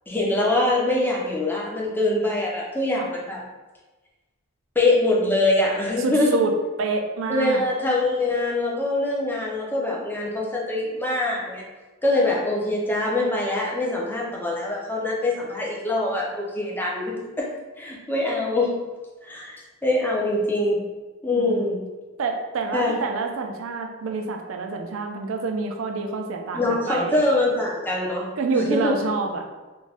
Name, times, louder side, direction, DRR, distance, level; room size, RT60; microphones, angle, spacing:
voice 1, 0.1-3.4 4.8-6.4 7.3-11.6 12.0-17.5 17.8-18.8 19.2-19.6 19.8-20.8 21.2-21.8 22.7-22.9 26.5-28.3 28.5-28.9, left 2 dB, 10° left, -3 dB, 0.5 m, -23 dB
voice 2, 6.0-6.5 6.8-7.6 21.3-21.8 22.2-27.2 28.4-29.5, right 4 dB, 65° right, 3 dB, 0.4 m, -27 dB
2.5 x 2.2 x 3.3 m, 1.2 s
head